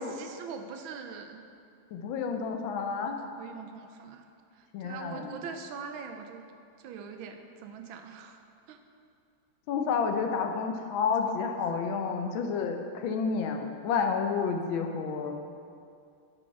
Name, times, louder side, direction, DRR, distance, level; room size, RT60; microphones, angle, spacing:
voice 1, 0.0-1.4 3.0-4.3 4.6-6.5 6.8-8.4 8.7-8.8 11.2-11.3 11.6-11.7, right 5 dB, 80° right, 6 dB, 1.3 m, -43 dB
voice 2, 1.9-3.2 4.7-5.3 9.7-15.4, left 5 dB, 75° left, 4 dB, 1.4 m, -30 dB
8.3 x 5.5 x 5.6 m, 2.4 s
omnidirectional pair, 2.3 m